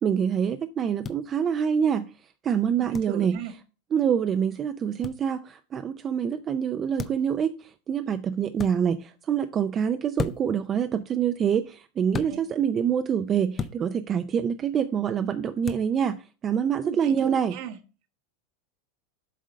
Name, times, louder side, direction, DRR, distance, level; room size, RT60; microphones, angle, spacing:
voice 1, 0.0-2.1 2.4-3.4 3.9-16.2 16.4-17.6, right 8 dB, 30° right, 0.4 m, -26 dB
sound 1, 1.0-1.2 2.9-3.1 5.0-5.2 7.0-7.3 8.5-8.7 10.2-10.6 12.1-12.3 13.6-13.8 15.6-15.9, left 6 dB, 25° left, 0.6 m, -33 dB
voice 2, 2.7-3.5 12.3-12.4 16.8-17.8, right 8 dB, 55° right, 1.1 m, -36 dB
7.5 x 3.7 x 5.3 m
supercardioid pair, 125°, 0 cm